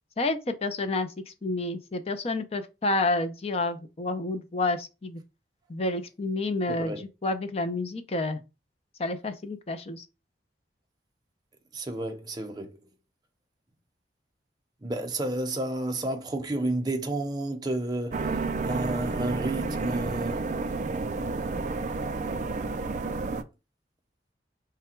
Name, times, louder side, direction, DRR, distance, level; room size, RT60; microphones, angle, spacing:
voice 1, 0.2-5.2 5.7-8.4 9.0-10.0, left 2 dB, 35° left, 0.6 m, -29 dB
voice 2, 6.7-7.0 11.7-12.8 14.8-20.5, right 1 dB, 25° right, 0.7 m, -31 dB
sound 1, 18.1-23.4, right 3 dB, 40° right, 0.4 m, -30 dB
4.9 x 2.2 x 4.4 m
head